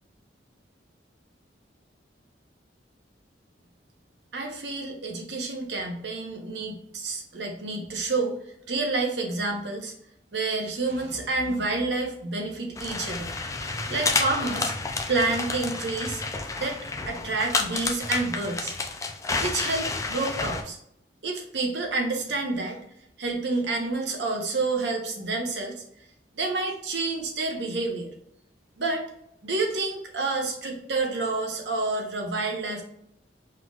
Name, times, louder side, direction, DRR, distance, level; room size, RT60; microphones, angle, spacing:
voice 1, 4.3-8.4 8.7-9.9 10.3-13.3 13.9-14.7 15.1-16.2 16.6-16.8 17.1-18.8 19.4-20.8 21.2-22.8 23.2-25.8 26.3-28.1 28.8-29.1 29.4-32.8, right 3 dB, 70° right, 1 dB, 1.0 m, -29 dB
sound 1, 12.8-20.6, left 3 dB, 20° left, 0.5 m, -30 dB
4.4 x 3.9 x 2.4 m, 0.73 s
head